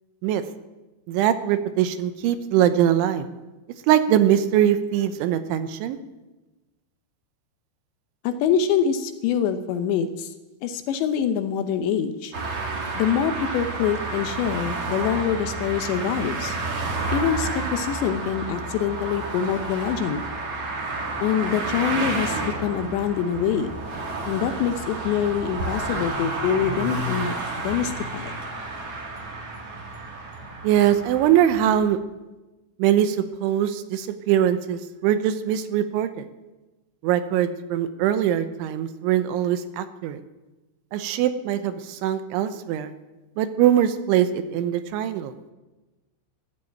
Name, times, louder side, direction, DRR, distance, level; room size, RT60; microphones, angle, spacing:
voice 1, 1.1-3.3 3.9-6.0 30.6-32.0 32.8-36.2 37.0-40.2 40.9-42.9 43.4-45.3, right 10 dB, 80° right, 10 dB, 3.2 m, -22 dB
voice 2, 8.2-10.3 10.6-12.3 13.0-16.6 17.1-20.2 21.2-23.7 24.3-27.3 27.6-28.3, left 8 dB, 75° left, 9 dB, 2.8 m, -25 dB
sound 1, 12.3-31.8, right 3 dB, 40° right, 2.8 m, -30 dB
14.5 x 11.0 x 9.0 m, 1.1 s
omnidirectional pair, 5.6 m